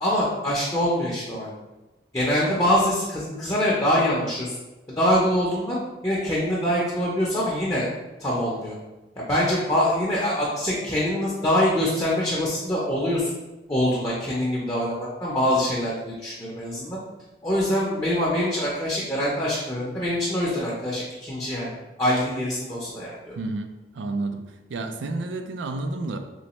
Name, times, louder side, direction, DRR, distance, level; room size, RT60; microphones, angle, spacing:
voice 1, 0.0-1.5 2.1-4.6 4.9-5.8 6.0-7.9 8.2-8.8 9.2-13.3 13.7-17.0 17.4-21.7 22.0-23.4, equal, 15° left, -6 dB, 0.5 m, -24 dB
voice 2, 23.4-23.7 23.9-26.2, right 2 dB, 85° right, 7 dB, 0.4 m, -30 dB
3.1 x 3.1 x 2.9 m, 1.1 s
head